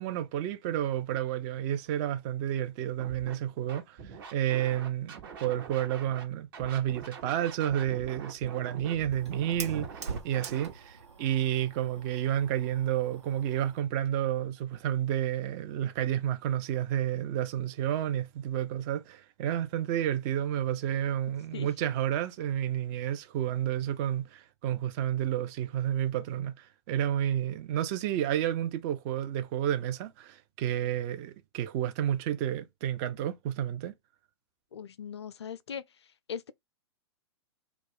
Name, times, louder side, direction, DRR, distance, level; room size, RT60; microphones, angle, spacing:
voice 1, 0.0-33.9, right 11 dB, 35° right, 0.5 m, -31 dB
Scratching (performance technique), 3.0-3.3 3.7-6.2 6.5-10.7, right 6 dB, 50° right, 1.2 m, -44 dB
Fire, 7.7-13.8, right 4 dB, 75° right, 1.1 m, -44 dB
voice 2, 34.7-35.8 36.3-36.5, left 7 dB, 70° left, 0.4 m, -39 dB
2.3 x 2.2 x 3.8 m
figure-of-eight pair, 105°, 15 cm